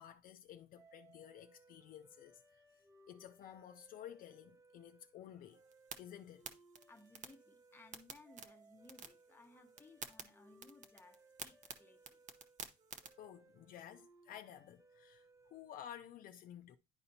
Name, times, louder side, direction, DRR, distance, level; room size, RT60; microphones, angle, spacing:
voice 1, 0.0-2.6 3.1-5.6 6.0-6.5 13.2-16.8, left 10 dB, 60° left, 0.5 m, -53 dB
sound 1, 0.7-15.8, right 2 dB, 20° right, 0.8 m, -66 dB
sound 2, 5.5-13.1, right 5 dB, 45° right, 0.9 m, -53 dB
voice 2, 6.9-12.2, left 2 dB, 15° left, 0.9 m, -62 dB
10.5 x 4.2 x 2.7 m
cardioid pair, 110°, 17 cm